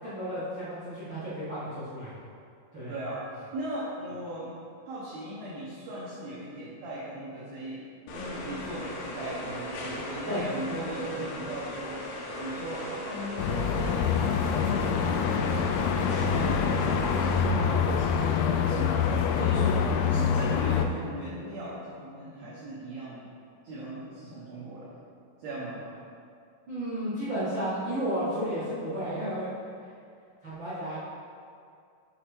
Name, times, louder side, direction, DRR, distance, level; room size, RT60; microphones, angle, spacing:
voice 1, 0.0-2.1 2.7-2.9 10.2-10.4 26.7-29.5 30.4-31.0, equal, 90° right, -15 dB, 1.0 m, -32 dB
voice 2, 2.9-4.5 4.9-12.1 12.4-23.3 23.6-25.0 25.4-25.8, right 1 dB, 70° right, -7 dB, 2.6 m, -38 dB
sound 1, 8.1-17.4, left 1 dB, 75° left, 3.0 m, -38 dB
sound 2, 13.4-20.9, left 6 dB, 90° left, 3.2 m, -25 dB
6.6 x 6.5 x 4.4 m, 2.3 s
omnidirectional pair, 5.7 m